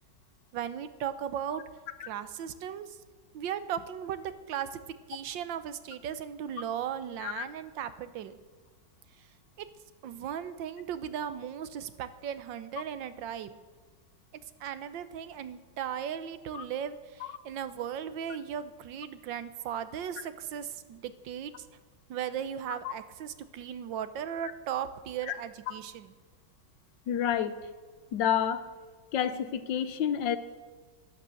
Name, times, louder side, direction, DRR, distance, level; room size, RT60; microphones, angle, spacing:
voice 1, 0.5-1.6 2.0-3.0 3.3-4.8 5.1-8.4 9.6-9.7 10.0-13.6 14.6-21.7 22.1-26.1, right 9 dB, 80° right, 13 dB, 1.5 m, -37 dB
voice 2, 27.1-27.5 28.1-28.6 29.1-30.4, left 9 dB, 80° left, 12 dB, 1.5 m, -29 dB
12.0 x 11.0 x 7.7 m, 1.4 s
omnidirectional pair, 2.0 m